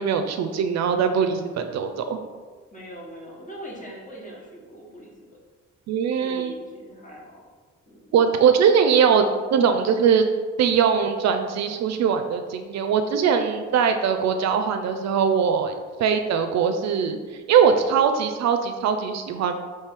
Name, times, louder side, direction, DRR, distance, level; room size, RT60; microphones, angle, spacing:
voice 1, 0.0-2.2 5.9-6.5 8.1-10.3 10.6-15.7 16.0-17.2 17.5-19.5, right 7 dB, 60° right, 7 dB, 0.4 m, -21 dB
voice 2, 2.7-5.4 6.2-7.5 7.9-8.1, equal, 25° left, -3 dB, 1.3 m, -41 dB
3.4 x 3.2 x 4.4 m, 1.4 s
cardioid pair, 90°, 30 cm